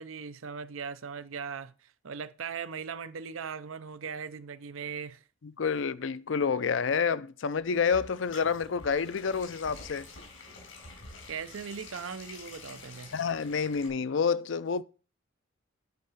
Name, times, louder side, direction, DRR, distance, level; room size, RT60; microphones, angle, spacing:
voice 1, 0.0-5.2 11.3-13.1, right 6 dB, 85° right, 0.6 m, -39 dB
voice 2, 5.4-10.1 13.1-14.8, left 6 dB, 65° left, 0.5 m, -28 dB
sound 1, 7.6-13.9, left 3 dB, 90° left, 4.6 m, -48 dB
9.5 x 4.7 x 5.6 m
head